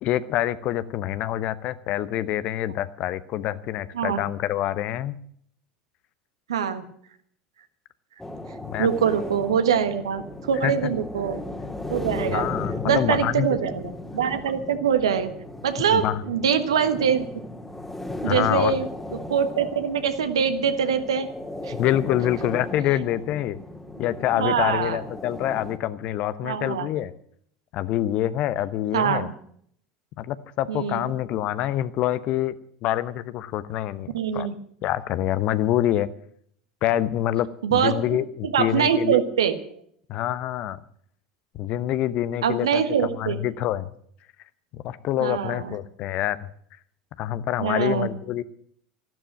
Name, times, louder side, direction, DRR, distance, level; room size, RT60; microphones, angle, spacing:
voice 1, 0.0-5.2 8.6-8.9 10.6-10.7 12.3-13.5 15.9-16.2 18.2-18.7 21.7-23.6 24.0-27.1 27.7-29.3 30.2-32.5 32.8-34.5 34.8-36.1 36.8-39.2 40.1-40.8 41.5-42.8 43.2-43.9 44.7-46.5 47.2-48.4, left 12 dB, 50° left, 15 dB, 0.9 m, -26 dB
voice 2, 6.5-6.8 8.8-11.4 11.9-12.5 12.9-15.3 15.6-17.2 18.2-18.9 19.3-21.3 21.6-21.7 24.4-25.0 26.4-26.9 28.9-29.3 30.7-31.1 34.1-34.5 37.6-38.2 38.4-39.6 42.4-43.4 45.2-45.7 47.6-48.1, right 7 dB, 75° right, 9 dB, 1.4 m, -23 dB
sound 1, 8.2-25.8, left 2 dB, 5° left, 2.1 m, -36 dB
14.0 x 12.5 x 7.5 m, 0.63 s
figure-of-eight pair, 75°, 3 cm